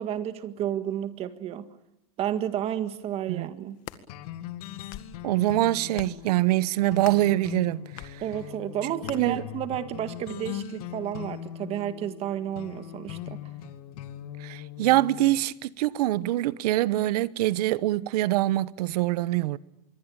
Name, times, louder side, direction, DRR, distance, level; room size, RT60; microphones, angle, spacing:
voice 1, 0.0-1.7 2.2-3.8 8.2-13.4, right 10 dB, 30° right, 1.8 m, -31 dB
sound 1, 3.6-4.0 4.7-5.2 5.9-6.3 7.0-7.3 8.0-8.2 9.1-9.2, left 14 dB, 45° left, 1.9 m, -42 dB
sound 2, 4.1-15.4, left 12 dB, 70° left, 2.1 m, -40 dB
voice 2, 5.2-8.2 9.2-9.4 14.4-19.6, right 16 dB, 80° right, 1.0 m, -24 dB
26.0 x 23.0 x 8.7 m
supercardioid pair, 165°, 20 cm